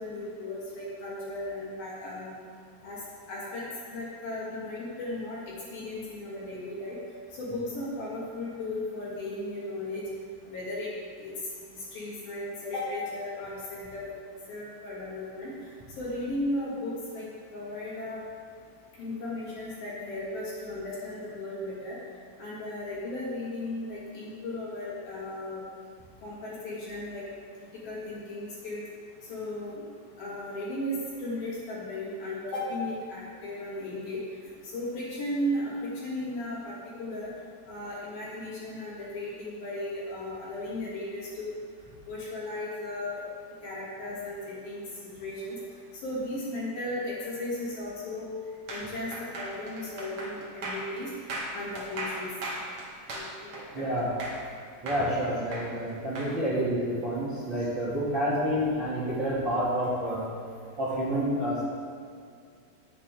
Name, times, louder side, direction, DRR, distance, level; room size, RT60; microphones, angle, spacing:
voice 1, 0.0-2.3 2.8-3.0 3.3-3.6 3.9-7.0 7.4-10.0 10.5-10.9 11.2-11.3 11.7-14.1 14.5-15.5 16.0-17.2 17.5-18.2 19.0-22.0 22.4-25.6 26.2-27.2 27.8-28.8 29.3-29.8 30.2-34.2 34.7-37.3 37.7-41.5 42.1-43.2 43.6-45.6 46.0-48.4 48.7-51.1 51.5-52.3 53.1-54.0, left 1 dB, 50° left, -7 dB, 4.1 m, -35 dB
sound 1, 48.7-54.5 54.9-56.3, right 1 dB, 85° right, 1.2 m, -37 dB
voice 2, 53.7-54.1 54.8-60.3 60.8-61.6, equal, 35° right, -10 dB, 2.2 m, -28 dB
18.0 x 8.5 x 3.7 m, 2.3 s
omnidirectional pair, 5.8 m